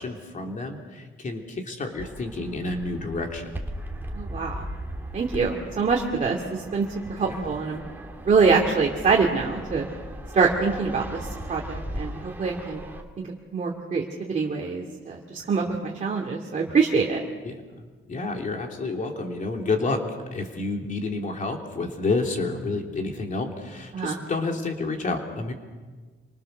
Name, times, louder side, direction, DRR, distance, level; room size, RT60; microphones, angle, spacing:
voice 1, 0.0-3.5 7.2-7.5 17.4-17.6 18.1-20.0 20.3-25.5, left 3 dB, 40° left, 2 dB, 3.2 m, -29 dB
Fixed-wing aircraft airplane, 2.0-13.0, right 1 dB, 10° right, 2.5 m, -38 dB
voice 2, 4.1-4.7 5.1-7.8 8.3-9.9 10.3-11.2 11.4-12.8 13.2-17.2 23.9-24.2, right 5 dB, 40° right, -1 dB, 2.4 m, -25 dB
28.0 x 25.0 x 6.7 m, 1.4 s
wide cardioid pair, 180°, 20 cm